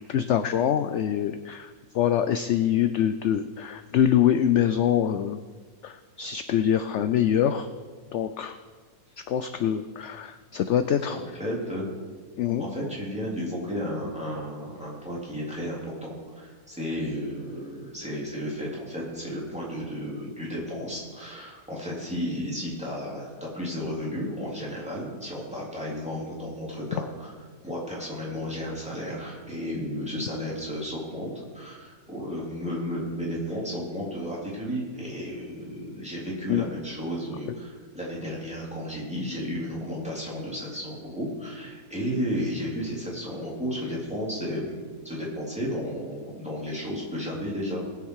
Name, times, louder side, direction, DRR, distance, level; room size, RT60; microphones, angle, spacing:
voice 1, 0.1-1.7 1.9-5.4 5.8-7.7 8.1-8.6 9.3-11.2 12.4-12.7 36.5-36.6, left 9 dB, 70° left, 11 dB, 0.7 m, -24 dB
voice 2, 11.1-11.9 12.6-27.3 27.6-47.8, equal, 5° right, -5 dB, 3.2 m, -33 dB
20.0 x 7.2 x 4.8 m, 1.5 s
omnidirectional pair, 1.7 m